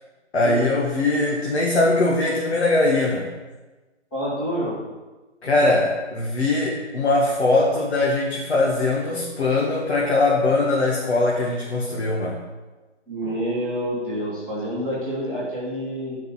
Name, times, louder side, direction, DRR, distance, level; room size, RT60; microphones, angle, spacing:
voice 1, 0.3-3.3 5.4-12.4, left 2 dB, 60° left, -2 dB, 2.0 m, -21 dB
voice 2, 4.1-4.8 13.1-16.2, equal, 5° left, -9 dB, 1.5 m, -27 dB
10.0 x 5.5 x 8.0 m, 1.2 s
hypercardioid pair, 175°, 35 cm